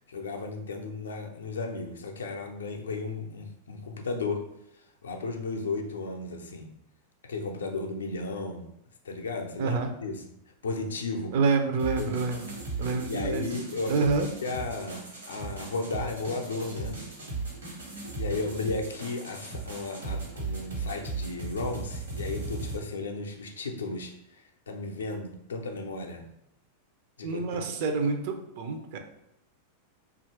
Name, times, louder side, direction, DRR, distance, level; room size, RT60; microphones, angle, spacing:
voice 1, 0.1-4.5 5.0-6.7 7.2-8.7 9.0-9.8 10.0-10.2 10.6-11.4 12.0-12.2 13.1-14.0 14.4-17.0 18.1-26.3 27.2-27.6, left 3 dB, 70° left, 4 dB, 0.4 m, -34 dB
voice 2, 9.6-9.9 11.3-12.5 12.8-13.4 13.9-14.3 27.2-29.0, right 4 dB, 50° right, 5 dB, 0.4 m, -27 dB
sound 1, 11.8-22.8, right 3 dB, 75° right, 1.1 m, -37 dB
2.7 x 2.4 x 3.1 m, 0.80 s
figure-of-eight pair, 90°, 0 cm